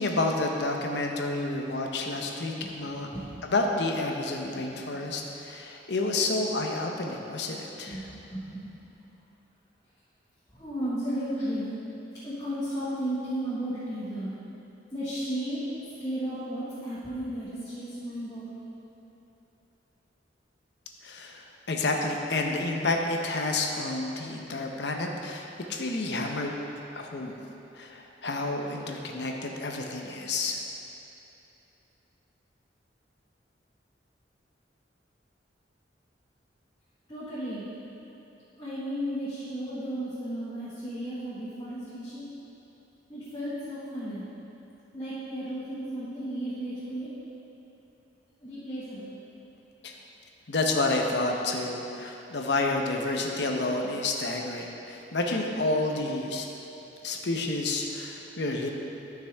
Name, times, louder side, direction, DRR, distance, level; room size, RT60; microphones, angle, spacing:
voice 1, 0.0-3.1 3.4-8.1 21.0-26.5 26.9-27.3 27.8-30.6 49.8-49.9 50.5-56.5 57.0-58.7, left 2 dB, 70° left, 1 dB, 0.9 m, -29 dB
voice 2, 2.9-3.3 7.9-8.0 8.3-8.7 10.5-11.7 12.2-14.3 14.9-15.6 16.0-18.6 37.1-37.6 38.6-42.2 43.1-44.2 44.9-47.1 48.4-49.1, equal, 20° left, -12 dB, 1.7 m, -34 dB
13.0 x 6.0 x 3.5 m, 3.0 s
head